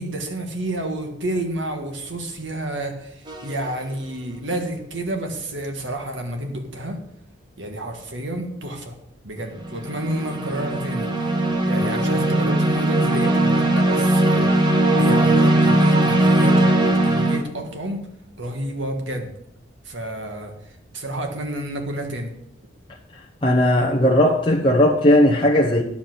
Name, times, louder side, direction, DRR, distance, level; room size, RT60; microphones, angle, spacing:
voice 1, 0.0-7.0 7.6-8.9 9.2-11.3 11.6-18.1 18.4-19.3 19.8-20.5 20.9-22.3, right 1 dB, 75° right, 4 dB, 1.7 m, -30 dB
sound 1, 3.3-3.6 9.5-17.4, right 1 dB, 25° right, 1.2 m, -19 dB
voice 2, 23.4-25.8, left 1 dB, 25° left, -3 dB, 0.8 m, -17 dB
10.0 x 7.3 x 6.1 m, 0.78 s
head